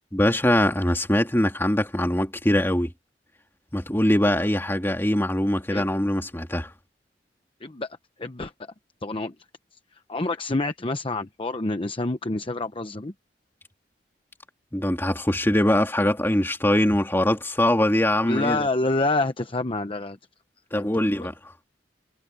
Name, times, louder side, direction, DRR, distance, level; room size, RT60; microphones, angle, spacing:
voice 1, 0.1-2.9 3.7-6.7 14.7-18.6 20.7-21.3, left 1 dB, 15° left, 2.5 m, -22 dB
voice 2, 8.2-8.5 9.0-9.3 10.1-13.1 18.2-20.2 20.7-20.9, left 2 dB, 30° left, 0.9 m, -27 dB
head